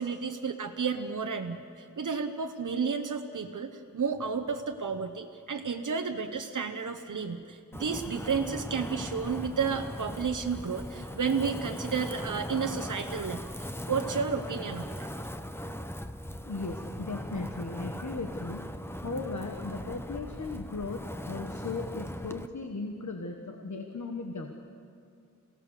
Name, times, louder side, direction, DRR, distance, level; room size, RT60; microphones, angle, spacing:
voice 1, 0.0-15.1, right 5 dB, 80° right, 5 dB, 1.0 m, -32 dB
Wind, 7.7-22.5, equal, 10° left, 1.0 m, -39 dB
voice 2, 16.5-18.6 19.0-24.5, left 3 dB, 70° left, 4 dB, 1.5 m, -37 dB
28.0 x 17.0 x 6.7 m, 2.4 s
wide cardioid pair, 65°, 30 cm